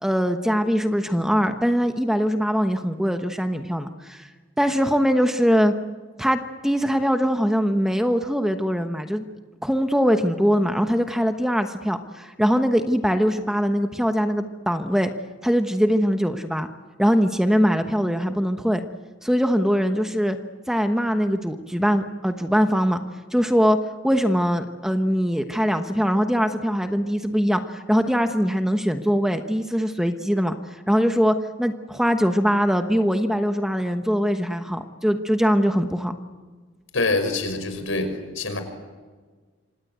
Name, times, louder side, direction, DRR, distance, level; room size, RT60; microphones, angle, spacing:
voice 1, 0.0-4.3 4.6-5.7 6.2-9.2 9.6-15.1 15.4-16.7 17.0-18.8 19.2-20.4 20.7-23.0 23.3-23.8 24.0-36.1, equal, ahead, 7 dB, 1.1 m, -22 dB
voice 2, 36.9-38.6, left 2 dB, 85° left, 7 dB, 5.9 m, -25 dB
27.5 x 26.0 x 8.1 m, 1.4 s
head